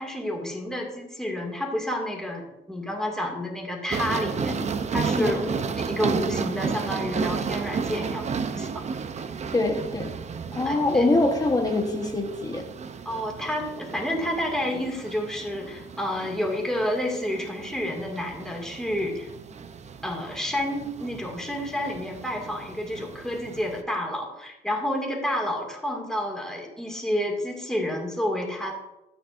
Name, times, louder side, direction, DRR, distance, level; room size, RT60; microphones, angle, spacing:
voice 1, 0.0-4.6 4.9-8.8 10.7-11.2 13.1-19.3 20.0-28.7, left 1 dB, 5° left, 2.2 m, -30 dB
sound 1, 3.9-23.8, right 5 dB, 35° right, 0.6 m, -33 dB
voice 2, 5.2-5.6 9.5-10.2 10.5-12.7, left 2 dB, 20° left, 1.1 m, -24 dB
13.0 x 8.8 x 2.6 m
cardioid pair, 125°, 21 cm